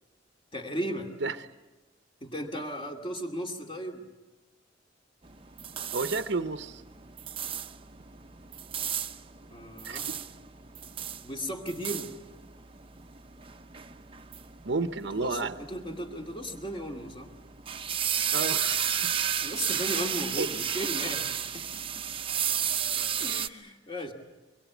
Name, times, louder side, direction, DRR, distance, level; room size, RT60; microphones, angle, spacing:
voice 1, 0.5-1.1 2.2-4.0 9.5-10.1 11.2-12.1 15.1-17.3 19.4-21.3 21.5-22.0 23.2-24.1, equal, 30° left, 2 dB, 2.4 m, -36 dB
sound 1, 5.2-23.5, right 8 dB, 30° right, 0.8 m, -33 dB
voice 2, 5.9-6.8 9.8-10.0 14.6-15.5 18.3-18.8 20.4-20.5, right 3 dB, 65° right, 9 dB, 0.8 m, -30 dB
24.5 x 23.0 x 8.3 m, 1.2 s
head